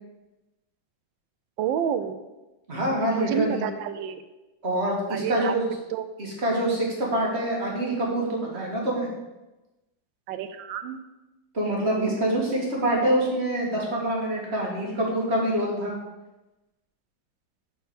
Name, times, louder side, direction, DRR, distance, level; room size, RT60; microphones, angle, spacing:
voice 1, 1.6-2.2 3.1-4.2 5.1-5.5 5.9-6.0 10.3-11.0, right 8 dB, 85° right, 10 dB, 1.3 m, -29 dB
voice 2, 2.7-3.7 4.6-5.6 6.2-9.1 11.5-16.0, right 1 dB, 35° right, -3 dB, 1.9 m, -25 dB
6.7 x 4.5 x 6.0 m, 1.0 s
omnidirectional pair, 2.0 m